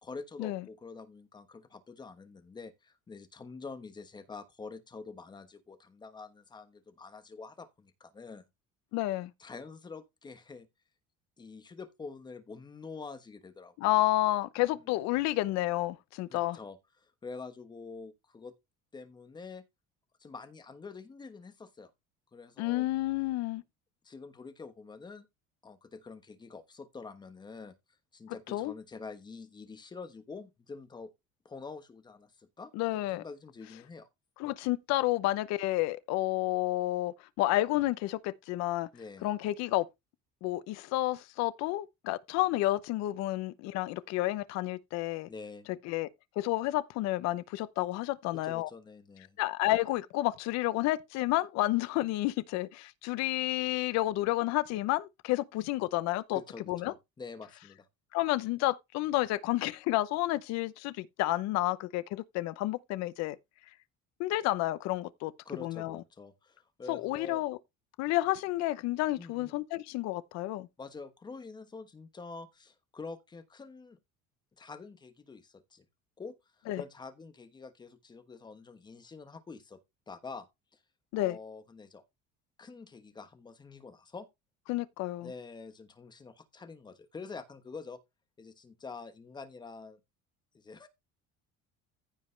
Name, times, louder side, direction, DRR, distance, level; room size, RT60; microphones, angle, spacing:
voice 1, 0.0-8.4 9.4-10.7 11.4-13.7 16.3-18.5 18.9-19.6 20.2-21.9 22.3-22.9 24.0-25.3 25.6-27.7 28.1-31.1 31.4-34.1 38.9-39.3 45.3-45.7 48.3-49.4 56.3-57.9 65.4-67.4 69.2-69.6 70.8-74.0 74.6-75.9 76.2-79.8 80.1-80.5 80.7-80.8 81.1-82.0 82.6-84.3 85.2-88.0 88.4-90.0 90.5-90.9, left 4 dB, 15° left, 1.2 m, -46 dB
voice 2, 8.9-9.3 13.8-16.6 22.6-23.6 28.5-28.7 32.7-33.2 34.4-38.9 39.2-39.9 40.4-45.3 45.8-46.1 46.4-48.7 49.4-56.4 56.7-56.9 58.1-63.4 64.2-65.3 65.6-66.0 66.9-67.6 68.0-70.7 76.7-76.8 81.1-81.4 84.7-85.3, left 17 dB, 60° left, 0.8 m, -30 dB
15.0 x 5.2 x 3.3 m
cardioid pair, 180°, 30 cm